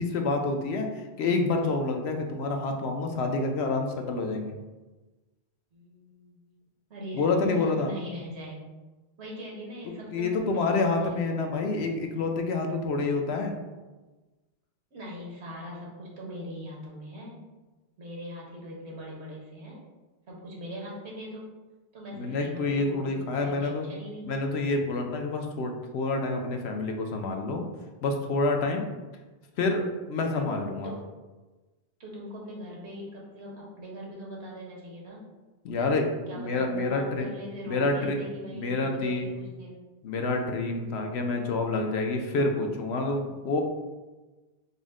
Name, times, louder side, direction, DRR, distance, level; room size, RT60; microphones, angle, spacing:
voice 1, 0.0-4.6 7.1-7.9 10.1-13.5 22.1-23.8 24.2-27.6 28.0-28.9 29.6-30.9 35.6-36.1 36.3-37.3 37.6-38.3 38.5-39.3 40.0-43.6, left 3 dB, 75° left, 3 dB, 0.9 m, -28 dB
voice 2, 5.7-6.4 6.9-8.7 9.2-11.4 14.9-17.4 18.0-19.8 20.3-21.5 21.9-24.3 30.8-31.0 32.0-35.2 36.3-39.8, equal, 80° right, -3 dB, 1.4 m, -41 dB
5.4 x 2.1 x 3.6 m, 1.2 s
omnidirectional pair, 1.1 m